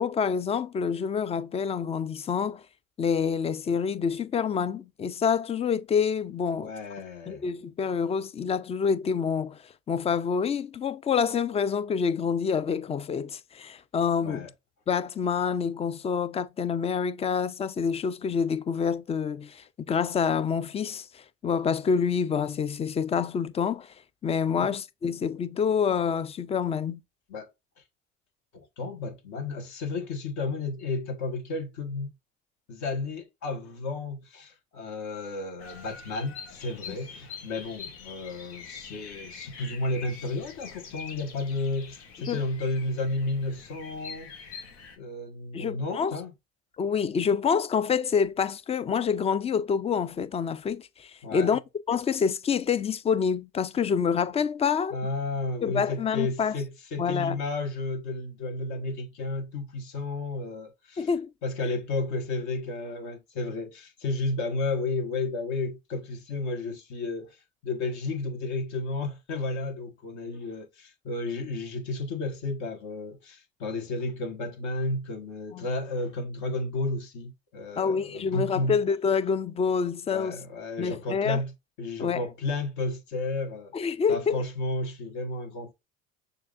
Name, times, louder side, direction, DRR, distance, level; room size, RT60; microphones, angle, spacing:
voice 1, 0.0-2.6 3.0-6.7 7.3-9.6 9.9-14.4 14.9-23.9 24.2-27.0 36.9-37.0 42.3-42.4 45.5-46.2 46.8-51.6 51.9-55.0 55.6-56.5 57.0-57.4 61.0-61.3 75.5-75.6 77.8-80.4 80.8-81.4 82.0-82.2 83.7-84.4, left 6 dB, 20° left, 0.3 m, -27 dB
voice 2, 6.5-7.5 14.2-14.5 24.5-24.7 27.3-27.5 27.8-27.9 28.5-32.1 32.7-44.3 45.0-46.3 51.2-51.6 54.9-61.1 61.4-78.8 80.1-81.5 81.8-83.7 84.1-85.7, left 2 dB, 60° left, 1.6 m, -32 dB
Bird vocalization bird call bird song, 35.6-45.0, left 6 dB, 80° left, 1.2 m, -45 dB
6.6 x 2.7 x 2.5 m
hypercardioid pair, 75°, 33 cm